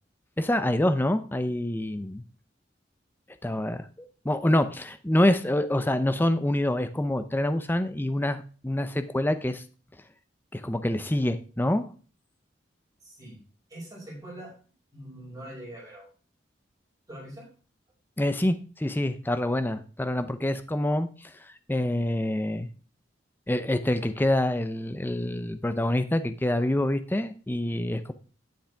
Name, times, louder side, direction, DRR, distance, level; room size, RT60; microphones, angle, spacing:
voice 1, 0.4-2.2 3.4-9.6 10.5-11.9 18.2-22.7 23.5-28.1, left 1 dB, 10° left, 9 dB, 0.6 m, -26 dB
voice 2, 13.0-13.4 13.7-14.5 14.9-16.1 17.1-17.5, right 1 dB, 20° right, -5 dB, 5.7 m, -43 dB
10.0 x 8.7 x 3.4 m, 0.39 s
head